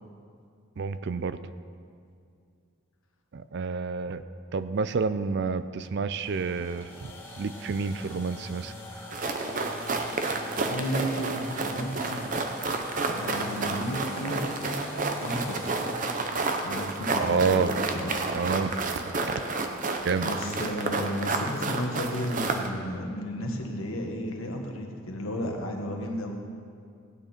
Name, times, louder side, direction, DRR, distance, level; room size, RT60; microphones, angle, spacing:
voice 1, 0.8-1.4 3.3-4.2 4.5-7.1 7.4-9.2 17.2-17.9 18.3-19.4 20.0-20.3, right 5 dB, 55° right, 13 dB, 0.4 m, -29 dB
sound 1, 6.1-16.4, left 1 dB, 10° left, 1.6 m, -43 dB
sound 2, 9.1-22.7, right 3 dB, 40° right, 0.8 m, -30 dB
voice 2, 10.6-12.2 13.1-14.5 15.1-15.8 16.6-17.7 17.9-18.2 20.2-26.4, equal, 75° left, 2 dB, 1.5 m, -33 dB
16.5 x 8.9 x 4.4 m, 2.3 s
head